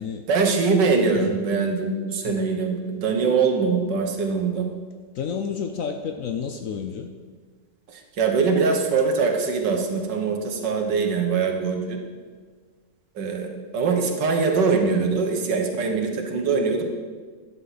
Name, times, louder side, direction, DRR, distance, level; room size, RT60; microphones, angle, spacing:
voice 1, 0.3-4.7 7.9-12.0 13.2-16.8, right 4 dB, 80° right, 4 dB, 1.9 m, -23 dB
voice 2, 5.1-7.1, left 7 dB, 65° left, 5 dB, 0.9 m, -30 dB
12.5 x 9.6 x 4.1 m, 1.5 s
omnidirectional pair, 1.9 m